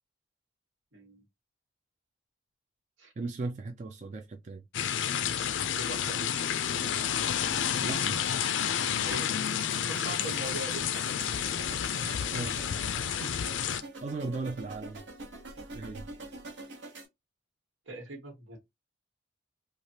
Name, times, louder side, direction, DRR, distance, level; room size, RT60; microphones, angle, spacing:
voice 1, 0.9-1.2 3.0-3.1 5.8-6.5 9.0-9.5 9.9-10.8 17.9-18.6, right 2 dB, 85° right, 1.4 m, -41 dB
voice 2, 3.2-4.6 7.8-8.2 12.0-12.7 13.1-13.4 13.8-15.0 15.7-16.1, right 3 dB, 40° right, 0.4 m, -37 dB
sound 1, 4.7-13.8, left 8 dB, 75° left, 0.4 m, -30 dB
sound 2, 9.1-17.1, right 2 dB, 70° right, 0.9 m, -46 dB
3.2 x 2.4 x 2.7 m
head